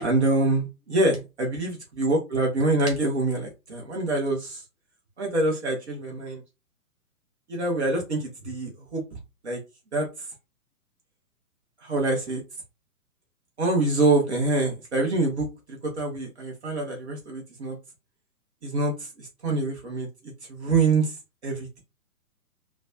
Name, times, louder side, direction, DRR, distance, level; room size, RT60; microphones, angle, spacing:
voice 1, 0.0-4.6 5.2-6.4 7.5-9.0 9.4-9.6 9.9-10.1 11.8-12.4 13.6-15.5 16.0-17.8 18.6-20.1 20.5-21.1 21.4-21.8, right 2 dB, 45° right, 0 dB, 1.0 m, -25 dB
3.1 x 2.2 x 2.5 m, 0.26 s
figure-of-eight pair, 125°, 45 cm